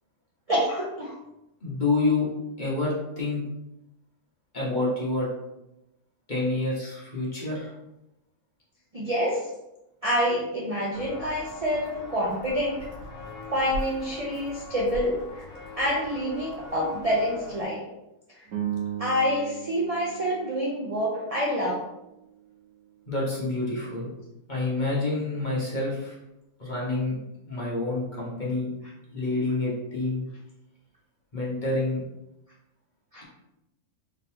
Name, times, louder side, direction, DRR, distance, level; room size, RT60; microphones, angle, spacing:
voice 1, 0.5-1.1 8.9-9.4 10.0-12.8 13.5-15.5 15.8-17.8 19.0-21.8 33.1-33.2, equal, 40° right, -4 dB, 0.6 m, -27 dB
voice 2, 1.6-2.3 2.6-3.4 4.5-5.3 6.3-7.7 23.1-24.1 24.5-26.2 26.6-27.2 27.5-28.7 29.1-30.2 31.3-32.0, left 2 dB, 35° left, -6 dB, 1.3 m, -28 dB
Walk footsteps, 10.9-17.6, left 1 dB, 55° left, 1.5 m, -40 dB
sound 1, 18.5-23.0, right 10 dB, 75° right, 1.2 m, -37 dB
4.0 x 3.5 x 2.8 m, 0.89 s
omnidirectional pair, 1.5 m